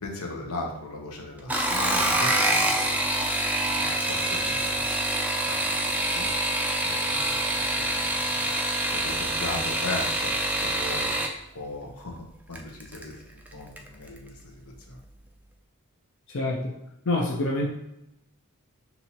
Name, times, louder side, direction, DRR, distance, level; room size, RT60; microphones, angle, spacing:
voice 1, 0.0-2.9 3.6-4.8 5.5-6.3 6.8-8.5 8.9-11.1 11.5-14.6 14.9-15.0, left 2 dB, 90° left, 0 dB, 1.0 m, -38 dB
sound 1, 1.4-11.3 12.5-13.0 13.5-13.9 14.2-14.3, right 1 dB, 5° right, 0.3 m, -26 dB
voice 2, 16.3-16.7 17.1-17.7, left 2 dB, 60° left, -1 dB, 0.6 m, -26 dB
5.9 x 2.7 x 2.9 m, 0.83 s
head